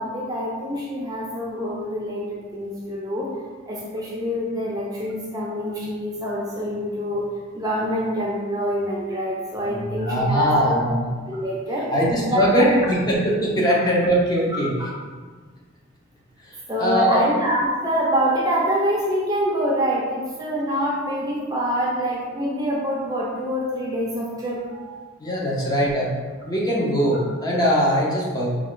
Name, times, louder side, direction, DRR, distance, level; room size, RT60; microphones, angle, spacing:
voice 1, 0.0-3.3 3.7-7.2 7.5-10.9 11.3-11.9 12.3-12.7 14.8-14.9 16.7-25.0, equal, 20° right, -4 dB, 0.6 m, -25 dB
voice 2, 9.6-11.0 11.9-14.7 16.4-17.2 25.2-26.2 26.5-28.5, equal, 20° left, -5 dB, 0.7 m, -21 dB
4.9 x 2.3 x 3.7 m, 1.5 s
head